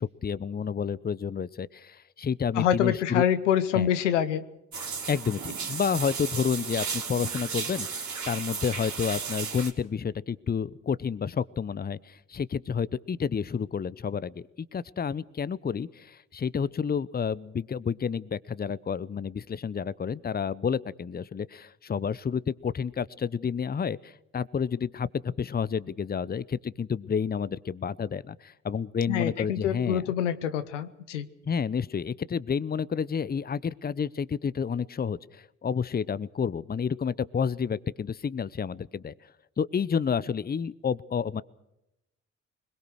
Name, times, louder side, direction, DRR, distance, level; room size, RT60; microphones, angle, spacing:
voice 1, 0.0-3.2 3.7-3.9 5.1-30.1 31.4-39.1 39.6-41.4, left 6 dB, 25° left, 19 dB, 0.8 m, -30 dB
voice 2, 2.5-4.4 29.1-31.3, left 10 dB, 90° left, 12 dB, 0.9 m, -26 dB
sound 1, 4.7-9.7, right 5 dB, 55° right, 3.8 m, -34 dB
22.0 x 21.5 x 6.4 m, 0.86 s
hypercardioid pair, 45°, 35 cm